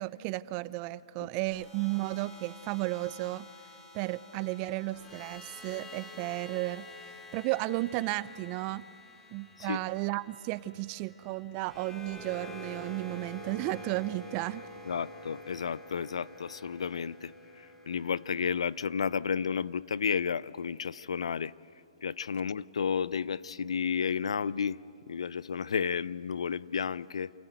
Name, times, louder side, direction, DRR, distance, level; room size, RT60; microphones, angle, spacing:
voice 1, 0.0-3.5 3.9-6.9 7.3-8.8 9.3-14.6, right 19 dB, 30° right, 0.5 m, -33 dB
sound 1, 1.4-19.5, left 1 dB, 15° left, 2.9 m, -49 dB
voice 2, 14.8-17.3 17.6-21.5 22.0-24.8 25.1-27.3, left 6 dB, 80° left, 0.5 m, -32 dB
27.5 x 14.0 x 9.3 m
hypercardioid pair, 140°, 3 cm